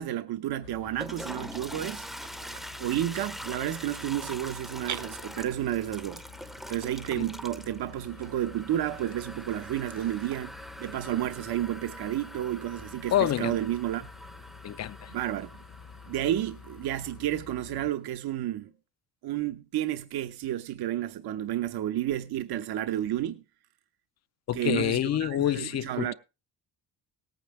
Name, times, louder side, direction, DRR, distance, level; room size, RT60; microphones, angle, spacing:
voice 1, 0.0-2.1 2.8-6.2 6.7-10.5 10.8-14.1 15.1-15.5 16.1-18.7 19.2-23.4 24.5-26.1, right 12 dB, 70° right, 0.9 m, -31 dB
sound 1, 0.6-17.9, left 6 dB, 65° left, 1.4 m, -50 dB
Toilet flush, 0.8-17.6, equal, ahead, 0.6 m, -44 dB
sound 2, 1.1-10.4, right 9 dB, 45° right, 0.7 m, -48 dB
voice 2, 13.1-13.6 14.6-15.1 24.5-26.1, left 11 dB, 45° left, 0.5 m, -27 dB
18.5 x 9.0 x 3.2 m
cardioid pair, 115°, 39 cm